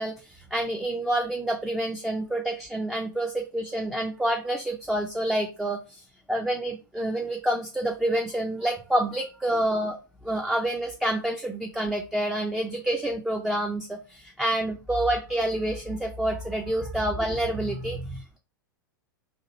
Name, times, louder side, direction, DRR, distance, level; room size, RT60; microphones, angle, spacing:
voice 1, 0.0-10.0 10.2-18.4, right 1 dB, 5° right, 2 dB, 0.3 m, -28 dB
2.7 x 2.5 x 4.0 m, 0.34 s
figure-of-eight pair, 95°, 12 cm